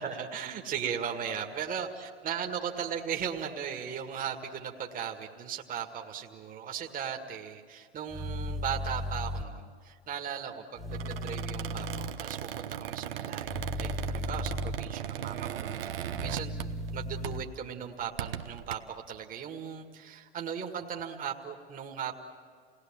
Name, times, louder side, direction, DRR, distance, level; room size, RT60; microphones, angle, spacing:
voice 1, 0.0-22.2, right 8 dB, 30° right, 2 dB, 1.9 m, -37 dB
sound 1, 8.1-9.4 10.8-12.1 13.4-14.8 16.1-17.4, left 1 dB, ahead, 1.7 m, -35 dB
Squeak, 10.9-17.0 17.2-17.5 18.0-18.7, right 10 dB, 70° right, 1.0 m, -38 dB
29.0 x 18.5 x 7.5 m, 2.1 s
figure-of-eight pair, 90°, 30 cm